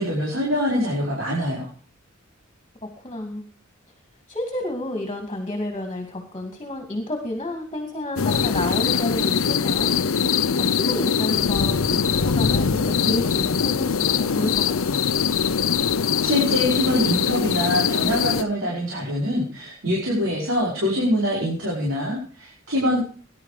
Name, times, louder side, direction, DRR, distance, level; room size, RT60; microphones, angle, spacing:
voice 1, 0.0-1.7 16.2-23.0, left 1 dB, 70° right, -4 dB, 5.0 m, -24 dB
voice 2, 2.8-3.4 4.3-9.9 10.3-15.0, left 1 dB, 25° left, 4 dB, 2.4 m, -31 dB
sound 1, 8.2-18.4, left 6 dB, 85° left, 0.7 m, -22 dB
19.5 x 11.0 x 5.0 m, 0.42 s
head